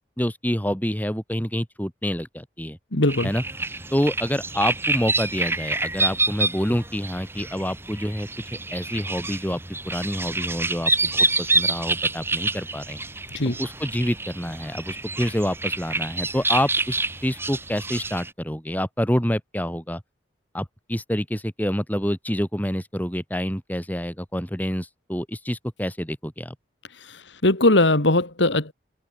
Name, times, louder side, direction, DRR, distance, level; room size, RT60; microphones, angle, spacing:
voice 1, 0.2-2.8 3.2-3.4 3.9-8.3 8.7-9.6 9.8-13.0 13.5-17.0 17.2-20.0 20.5-26.6, equal, 10° left, 7.1 m, -27 dB
voice 2, 2.9-3.3 13.3-13.6 27.1-28.7, left 2 dB, 75° left, 2.6 m, -20 dB
sound 1, 3.1-18.3, right 3 dB, 10° right, 3.7 m, -27 dB
head